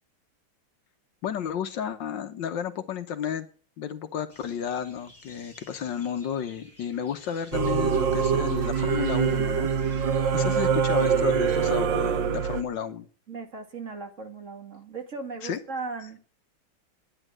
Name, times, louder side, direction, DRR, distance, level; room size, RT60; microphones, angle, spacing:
voice 1, 1.2-3.5 3.8-9.7 10.0-13.1 15.4-15.6, left 8 dB, 70° left, 1.6 m, -32 dB
sound 1, 4.3-11.7, left 1 dB, 5° left, 6.0 m, -54 dB
Singing / Musical instrument, 7.5-12.6, right 7 dB, 70° right, 1.6 m, -24 dB
voice 2, 13.3-16.2, right 4 dB, 40° right, 2.1 m, -37 dB
10.5 x 10.0 x 7.5 m
omnidirectional pair, 2.1 m